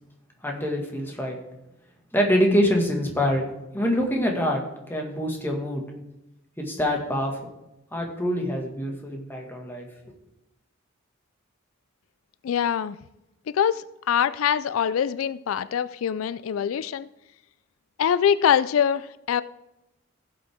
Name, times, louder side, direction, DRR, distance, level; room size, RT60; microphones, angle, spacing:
voice 1, 0.4-1.4 2.1-4.6 4.9-5.8 6.6-7.3 7.9-9.8, equal, 10° left, 0 dB, 1.9 m, -25 dB
voice 2, 12.4-13.0 13.5-17.1 18.0-19.4, left 8 dB, 80° left, 16 dB, 0.3 m, -24 dB
16.0 x 7.7 x 3.6 m, 0.92 s
head